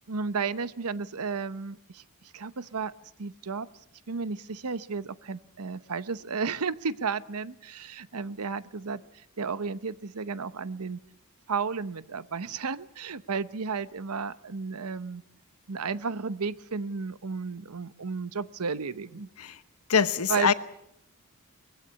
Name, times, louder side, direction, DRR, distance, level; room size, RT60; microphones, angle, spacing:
voice 1, 0.1-2.0 2.3-2.9 3.2-3.7 4.1-9.0 9.4-11.0 11.5-15.2 15.7-19.3 20.3-20.5, right 5 dB, 85° right, 0.9 m, -33 dB
voice 2, 19.9-20.5, left 6 dB, 85° left, 1.1 m, -23 dB
21.0 x 16.0 x 9.7 m
head